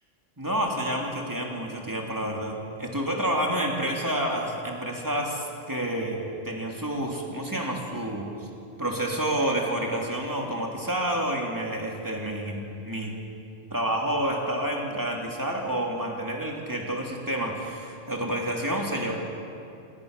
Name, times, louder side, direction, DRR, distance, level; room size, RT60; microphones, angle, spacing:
voice 1, 0.4-8.3 8.8-13.1 13.7-19.1, right 1 dB, 15° right, -1 dB, 3.1 m, -29 dB
28.5 x 18.0 x 6.7 m, 2.6 s
omnidirectional pair, 1.3 m